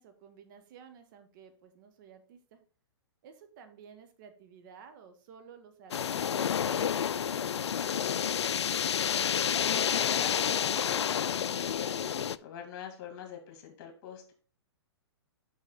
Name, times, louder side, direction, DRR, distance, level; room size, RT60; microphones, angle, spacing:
voice 1, 0.0-2.6 3.2-7.8 12.0-12.4, right 7 dB, 50° right, 8 dB, 1.3 m, -53 dB
sound 1, 5.9-12.4, left 8 dB, 80° left, 0.4 m, -29 dB
voice 2, 9.2-12.0 12.4-14.3, left 8 dB, 45° left, 5 dB, 2.3 m, -43 dB
6.3 x 6.2 x 3.8 m, 0.40 s
hypercardioid pair, 120°, 14 cm